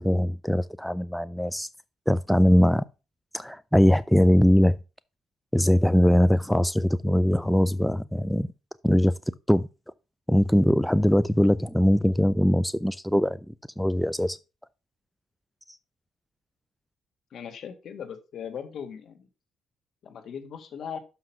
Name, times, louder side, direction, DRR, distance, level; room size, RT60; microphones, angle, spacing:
voice 1, 0.0-1.7 2.1-2.8 3.3-4.8 5.5-8.5 8.8-9.1 9.5-9.7 10.3-13.4 13.8-14.4, equal, ahead, 0.3 m, -21 dB
voice 2, 17.3-19.3 20.0-21.0, left 7 dB, 65° left, 1.8 m, -38 dB
6.4 x 5.9 x 5.7 m
cardioid pair, 90°, 0 cm